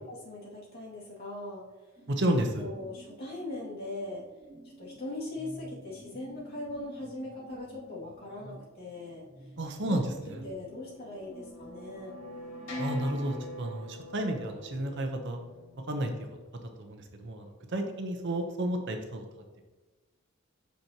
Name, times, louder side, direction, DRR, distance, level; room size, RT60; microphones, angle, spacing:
voice 1, 0.1-1.6 2.6-4.2 4.8-9.3 9.8-10.0 10.4-12.2, left 2 dB, 45° left, -6 dB, 2.3 m, -40 dB
sound 1, 2.0-13.1, equal, 15° right, 0.7 m, -51 dB
voice 2, 2.1-2.7 9.6-10.5 12.7-15.4 15.9-16.3 16.6-19.2, right 1 dB, 55° right, 4 dB, 0.9 m, -32 dB
sound 2, 10.4-16.4, equal, 70° left, 2.2 m, -43 dB
8.4 x 6.0 x 2.9 m, 1.2 s
head